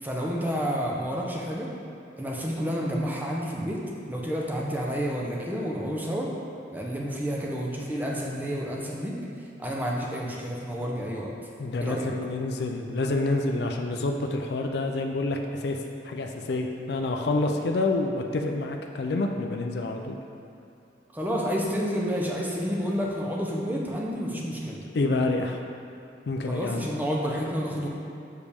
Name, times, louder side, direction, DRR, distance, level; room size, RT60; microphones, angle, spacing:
voice 1, 0.0-1.7 2.2-3.8 4.1-6.3 6.7-9.2 9.6-11.3 11.8-12.1 21.1-24.8 26.4-27.9, equal, 10° right, -3 dB, 0.6 m, -30 dB
voice 2, 11.6-15.8 16.0-20.2 24.9-25.6 26.3-26.9, left 2 dB, 60° left, 3 dB, 0.4 m, -28 dB
6.7 x 5.0 x 3.5 m, 2.7 s
head